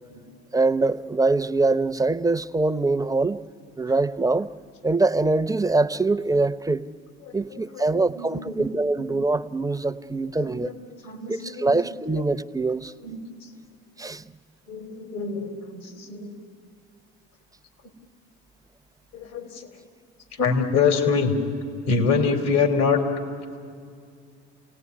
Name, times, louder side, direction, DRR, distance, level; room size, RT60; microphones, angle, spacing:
voice 1, 0.5-3.4 3.8-4.5 4.8-6.9 7.3-10.7 11.3-12.9 14.0-14.2, right 3 dB, 10° right, 0.8 m, -23 dB
voice 2, 7.2-8.7 8.9-9.0 10.4-11.9 12.1-12.2 13.0-13.5 14.7-16.4 19.1-19.7 20.3-21.4 21.9-23.0, left 5 dB, 75° left, 3.8 m, -26 dB
29.5 x 18.0 x 9.9 m
hypercardioid pair, 65°, 33 cm